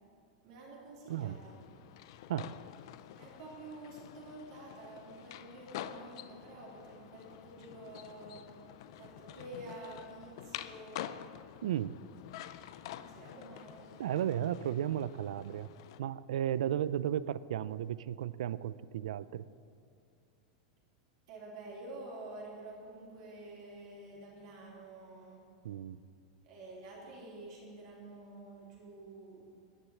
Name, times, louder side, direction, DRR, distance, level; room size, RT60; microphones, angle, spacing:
voice 1, 0.4-1.6 3.1-8.7 8.9-11.1 12.9-13.9 21.3-25.4 26.4-29.4, right 2 dB, 50° right, -4 dB, 2.9 m, -49 dB
sound 1, 1.1-16.0, left 12 dB, 50° left, 0.4 m, -48 dB
voice 2, 1.1-1.4 2.3-2.6 11.6-12.0 14.0-15.7 16.0-19.4 25.6-26.0, right 11 dB, 90° right, 17 dB, 0.4 m, -34 dB
10.5 x 9.8 x 7.6 m, 2.5 s
supercardioid pair, 180°, 3 cm